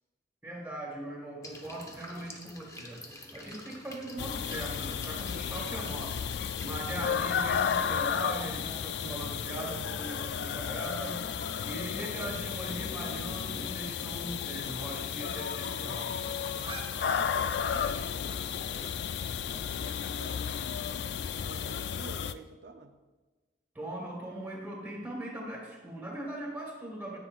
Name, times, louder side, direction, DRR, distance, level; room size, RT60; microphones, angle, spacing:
voice 1, 0.4-3.0 3.3-6.2 6.6-11.2 11.6-16.2 23.8-27.2, right 1 dB, 10° right, -2 dB, 1.6 m, -40 dB
sound 1, 1.4-6.8, left 2 dB, 20° left, 0.9 m, -48 dB
sound 2, 4.2-22.3, left 7 dB, 65° left, 0.3 m, -33 dB
sound 3, 14.1-20.5, right 2 dB, 30° right, 1.2 m, -49 dB
voice 2, 17.1-18.9 19.4-20.5 21.3-22.9, right 3 dB, 65° right, 6 dB, 0.6 m, -51 dB
9.8 x 9.2 x 2.4 m, 1.2 s
head